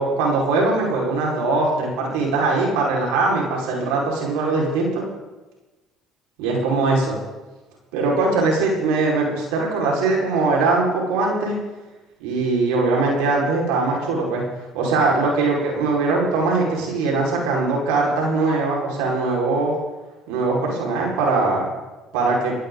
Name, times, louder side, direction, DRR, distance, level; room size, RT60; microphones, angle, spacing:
voice 1, 0.0-5.0 6.4-7.2 7.9-11.6 12.2-14.4 14.7-19.8 20.3-21.7 22.1-22.5, right 3 dB, 85° right, -2 dB, 5.0 m, -21 dB
17.5 x 16.0 x 4.0 m, 1.1 s
supercardioid pair, 80°, 0 cm